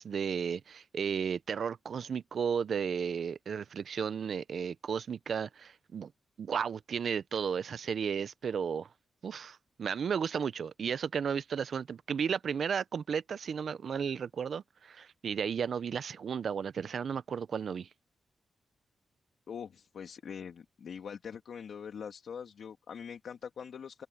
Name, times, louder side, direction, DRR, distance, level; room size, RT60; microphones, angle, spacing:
voice 1, 0.0-6.1 6.4-8.9 9.2-17.9, right 7 dB, 65° right, 0.5 m, -34 dB
voice 2, 19.5-24.1, left 7 dB, 70° left, 2.0 m, -43 dB
open air
wide cardioid pair, 130°, 0 cm